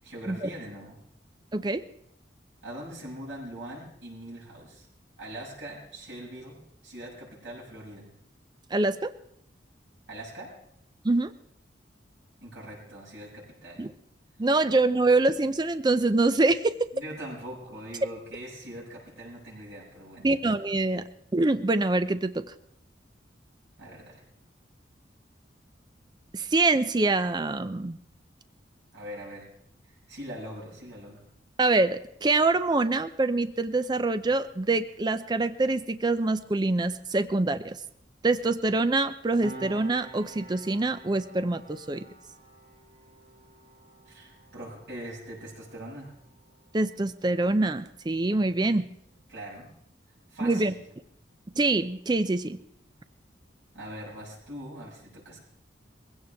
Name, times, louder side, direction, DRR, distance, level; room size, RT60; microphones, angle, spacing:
voice 1, 0.0-1.0 2.6-4.9 5.2-6.6 6.8-8.1 10.1-10.5 12.4-13.9 16.9-20.3 23.8-24.2 28.9-29.5 29.8-31.2 44.1-46.2 49.3-49.7 50.3-50.8 53.7-55.4, right 1 dB, 85° right, -5 dB, 7.0 m, -42 dB
voice 2, 1.5-1.8 8.7-9.1 11.0-11.3 13.8-13.9 14.4-16.8 20.2-21.0 21.3-22.4 26.3-28.0 31.6-37.8 38.2-42.1 46.7-48.9 50.4-50.7 51.6-52.6, right 2 dB, 25° right, 12 dB, 0.5 m, -25 dB
Piano, 39.4-46.4 46.7-46.9, right 2 dB, 55° right, 4.2 m, -48 dB
20.5 x 16.0 x 3.5 m, 0.73 s
head